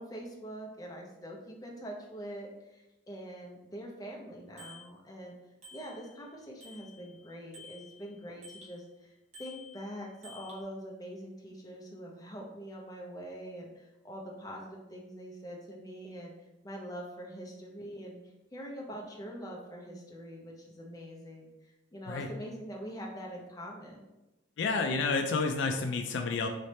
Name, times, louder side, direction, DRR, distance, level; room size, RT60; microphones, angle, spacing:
voice 1, 0.0-5.3 5.7-9.1 9.4-16.3 16.6-18.2 18.5-24.1, equal, 20° left, -2 dB, 0.7 m, -44 dB
Bicycle bell, 4.6-4.9 5.6-6.3 6.6-8.8 9.3-10.6, left 2 dB, 35° right, 0.9 m, -51 dB
voice 2, 24.6-26.5, left 4 dB, 65° left, 4 dB, 0.4 m, -30 dB
3.3 x 3.1 x 4.1 m, 0.99 s
head